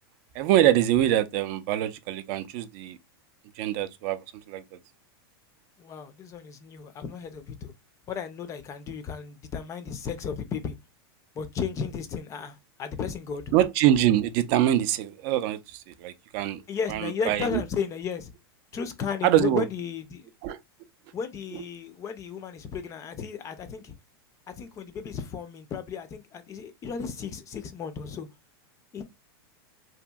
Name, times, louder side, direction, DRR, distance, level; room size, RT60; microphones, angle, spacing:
voice 1, 0.3-3.0 3.6-4.2 4.5-4.6 13.5-16.6 16.9-17.6 19.2-19.7 20.4-20.6, right 12 dB, 45° right, 0.4 m, -24 dB
voice 2, 5.8-7.7 8.1-10.8 11.4-13.4 16.7-18.3 18.7-20.3 21.1-23.9 24.5-28.3 28.9-29.0, left 6 dB, 25° left, 0.4 m, -34 dB
2.8 x 2.5 x 2.2 m
supercardioid pair, 135°, 13 cm